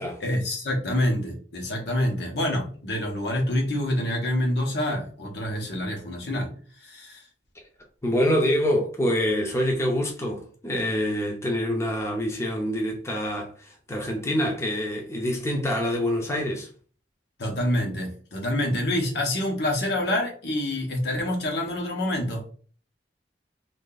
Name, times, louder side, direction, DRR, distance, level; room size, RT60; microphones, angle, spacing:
voice 1, 0.2-6.5 6.8-7.2 17.4-22.4, left 1 dB, 70° left, 1.1 m, -27 dB
voice 2, 8.0-16.7, equal, 15° left, 0.6 m, -26 dB
2.8 x 2.6 x 3.9 m
head